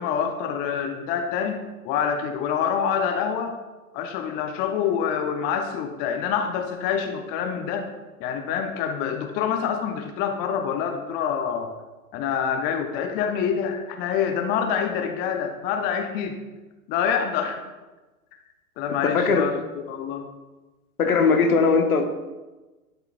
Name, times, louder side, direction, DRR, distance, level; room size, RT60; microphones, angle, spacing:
voice 1, 0.0-3.6 3.9-7.9 8.2-11.7 12.1-16.4 16.9-17.6 18.8-19.6 19.9-20.3, left 7 dB, 20° left, 5 dB, 0.5 m, -26 dB
voice 2, 19.0-19.6 21.0-22.0, left 4 dB, 70° left, 6 dB, 1.2 m, -19 dB
12.0 x 6.7 x 2.3 m, 1.2 s
figure-of-eight pair, 105°, 45 cm